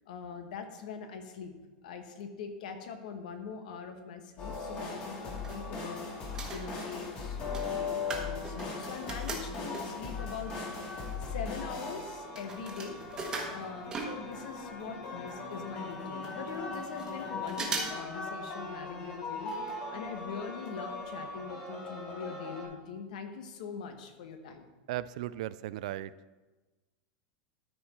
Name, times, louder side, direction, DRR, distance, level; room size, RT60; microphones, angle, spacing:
voice 1, 0.1-1.5 1.8-6.1 6.5-7.4 7.7-10.7 11.2-13.0 13.5-24.7, left 6 dB, 75° left, 6 dB, 1.3 m, -42 dB
sound 1, 4.4-22.6, left 4 dB, 30° left, 2.1 m, -39 dB
sound 2, 5.3-6.0 6.3-10.1 10.8-10.9 11.0-14.7 14.9-15.0 15.2-15.3 15.9-16.0 16.2-17.1 17.5-18.1 18.4-18.5 19.4-19.8 20.1-20.2 20.7-20.8 21.1-21.2, right 3 dB, 15° right, 1.2 m, -40 dB
voice 2, 24.9-26.1, right 14 dB, 65° right, 17 dB, 0.3 m, -36 dB
13.0 x 4.7 x 4.3 m, 1.2 s
supercardioid pair, 165°, 4 cm